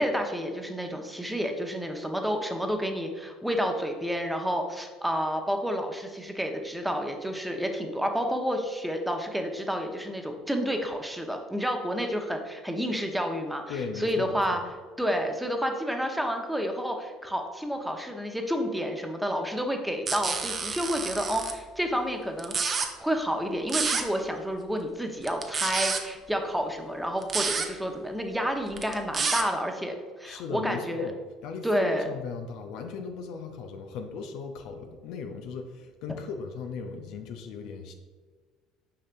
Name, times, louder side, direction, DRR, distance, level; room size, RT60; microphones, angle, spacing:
voice 1, 0.0-13.6 14.0-14.6 15.0-22.7 23.0-31.1 31.6-32.1, equal, 5° right, 4 dB, 0.9 m, -30 dB
voice 2, 13.7-14.6 30.2-31.1 31.4-37.9, left 5 dB, 65° left, 5 dB, 0.6 m, -37 dB
sound 1, 20.1-21.5 22.4-22.9 23.7-24.0 25.2-26.0 27.2-27.7 28.7-29.4, right 5 dB, 40° right, 0.7 m, -28 dB
6.6 x 5.5 x 2.6 m, 1.5 s
hypercardioid pair, 65°, 0 cm